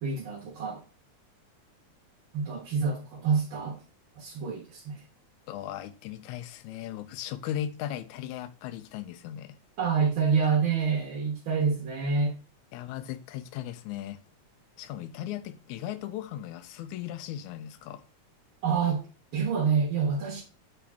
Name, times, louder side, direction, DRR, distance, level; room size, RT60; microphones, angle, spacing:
voice 1, 0.0-0.8 2.3-3.8 4.1-5.0 9.8-12.3 18.6-19.0 19.3-20.4, right 5 dB, 55° right, 1.7 m, -27 dB
voice 2, 5.5-9.6 9.8-9.9 10.5-10.6 12.7-14.2 14.8-18.0, left 11 dB, 85° left, 2.0 m, -37 dB
8.6 x 3.9 x 3.5 m
omnidirectional pair, 3.4 m